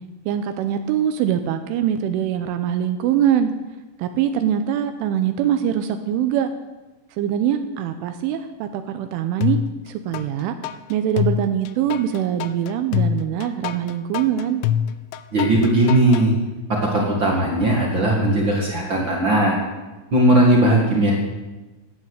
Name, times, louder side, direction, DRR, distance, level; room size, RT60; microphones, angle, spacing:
voice 1, 0.3-3.5 4.0-6.5 7.2-10.6 10.9-14.6, right 9 dB, 80° right, 9 dB, 3.1 m, -23 dB
sound 1, 9.4-10.3 10.6-16.3, left 10 dB, 90° left, 2.5 m, -25 dB
voice 2, 15.3-16.3 16.7-19.6 20.1-21.1, right 1 dB, 55° right, -1 dB, 1.3 m, -18 dB
15.5 x 9.8 x 8.2 m, 1.2 s
omnidirectional pair, 6.0 m